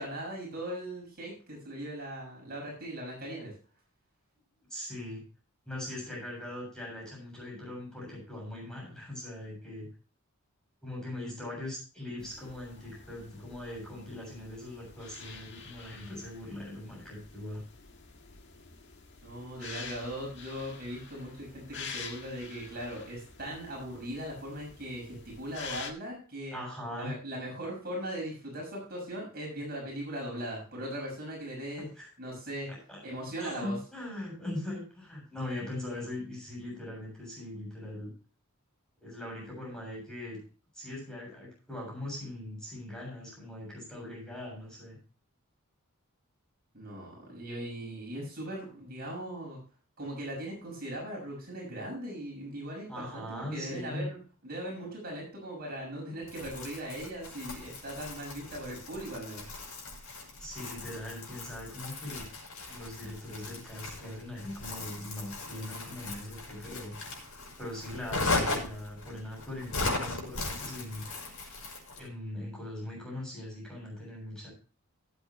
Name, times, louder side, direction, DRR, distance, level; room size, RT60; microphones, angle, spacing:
voice 1, 0.0-3.5 19.2-26.6 26.9-31.9 32.2-32.7 33.0-33.8 46.7-49.6 50.0-59.5, right 1 dB, 45° right, -2 dB, 6.3 m, -39 dB
voice 2, 4.7-5.2 5.7-9.9 10.8-17.6 26.5-27.1 31.8-32.1 32.7-33.0 33.4-38.1 39.0-40.4 40.7-45.0 52.9-54.1 60.4-62.3 62.7-67.0 67.6-71.0 72.0-74.5, left 1 dB, 5° left, -3 dB, 7.5 m, -40 dB
sound 1, 12.2-25.9, left 5 dB, 55° left, 1.7 m, -47 dB
Crumpling crinkling, 56.3-72.1, left 3 dB, 70° left, 6.0 m, -38 dB
17.5 x 8.1 x 3.1 m, 0.37 s
head